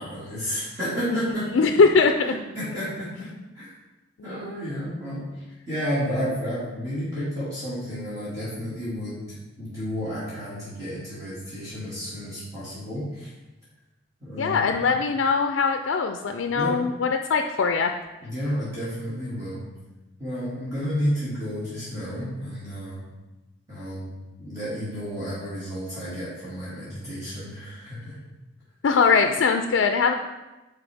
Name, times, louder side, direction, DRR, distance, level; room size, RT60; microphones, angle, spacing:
voice 1, 0.0-1.7 2.2-3.3 3.5-3.7 4.2-5.2 5.7-13.3 14.2-14.7 16.5-16.8 18.2-19.6 20.2-23.0 23.7-24.1 24.4-28.2, equal, 20° right, -12 dB, 2.1 m, -31 dB
voice 2, 1.5-2.1 4.3-4.4 14.4-17.9 28.8-30.1, left 5 dB, 85° left, 6 dB, 0.4 m, -21 dB
9.0 x 4.2 x 3.4 m, 1.1 s
head